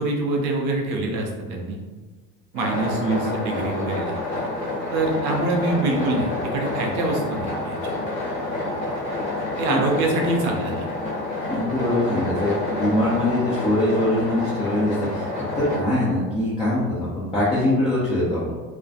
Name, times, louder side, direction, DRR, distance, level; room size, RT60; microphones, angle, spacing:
voice 1, 0.0-1.8 2.5-4.2 4.9-7.9 9.6-10.9, right 2 dB, 60° right, 1 dB, 0.6 m, -25 dB
sound 1, 2.5-15.8, left 2 dB, 75° left, 0.8 m, -28 dB
voice 2, 11.5-18.5, left 1 dB, 10° left, -9 dB, 0.5 m, -23 dB
2.3 x 2.1 x 2.5 m, 1.3 s
figure-of-eight pair, 60°, 49 cm